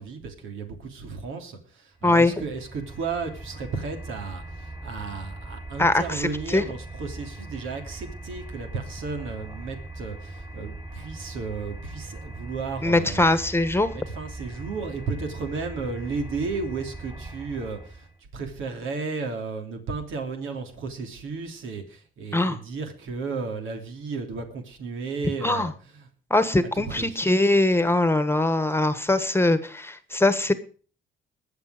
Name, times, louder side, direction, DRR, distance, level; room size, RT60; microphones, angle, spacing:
voice 1, 0.0-13.3 13.9-18.1 18.3-26.1 26.6-27.2, right 4 dB, 80° right, 4 dB, 3.1 m, -34 dB
voice 2, 2.0-2.3 5.8-6.6 12.8-13.9 22.3-22.6 25.4-25.7 26.3-30.5, left 2 dB, 10° left, 12 dB, 1.4 m, -22 dB
sound 1, 2.0-18.2, right 2 dB, 30° right, 3.8 m, -40 dB
20.5 x 7.2 x 5.1 m, 0.41 s
cardioid pair, 90°, 20 cm